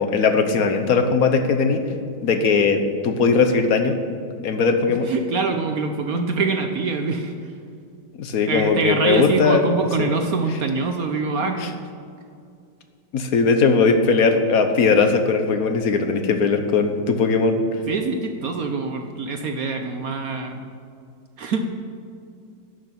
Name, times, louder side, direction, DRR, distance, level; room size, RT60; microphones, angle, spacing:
voice 1, 0.0-1.8 2.2-4.0 4.4-5.1 8.2-9.6 10.0-10.1 11.6-11.7 13.1-17.8, left 4 dB, 55° left, 7 dB, 1.2 m, -19 dB
voice 2, 5.0-7.5 8.5-11.8 17.9-20.7 21.4-21.7, right 4 dB, 60° right, 5 dB, 1.0 m, -24 dB
11.5 x 6.5 x 9.0 m, 2.4 s
omnidirectional pair, 2.2 m